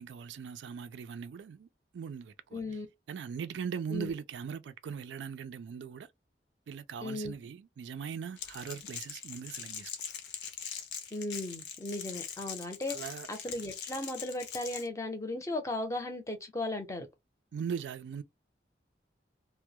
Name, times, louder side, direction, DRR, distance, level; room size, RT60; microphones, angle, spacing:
voice 1, 0.0-1.7 1.9-2.6 3.1-6.1 6.7-9.9 12.9-13.3 17.5-18.2, right 6 dB, 85° right, 0.3 m, -40 dB
voice 2, 2.5-2.9 3.9-4.1 7.0-7.4 11.1-17.1, left 2 dB, 15° left, 0.5 m, -36 dB
Crackle, 8.4-14.9, left 7 dB, 80° left, 0.6 m, -42 dB
2.2 x 2.0 x 2.8 m
head